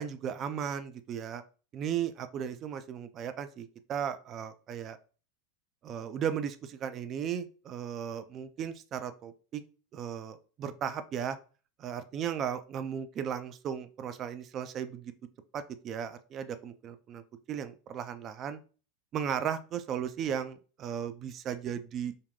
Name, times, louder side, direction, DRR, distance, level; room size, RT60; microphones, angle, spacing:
voice 1, 0.0-1.4 1.7-5.0 5.8-9.6 9.9-11.4 11.8-15.1 15.5-17.2 17.5-18.6 19.1-22.1, right 8 dB, 40° right, 11 dB, 0.4 m, -36 dB
3.6 x 2.2 x 3.7 m, 0.37 s
hypercardioid pair, 100°, 0 cm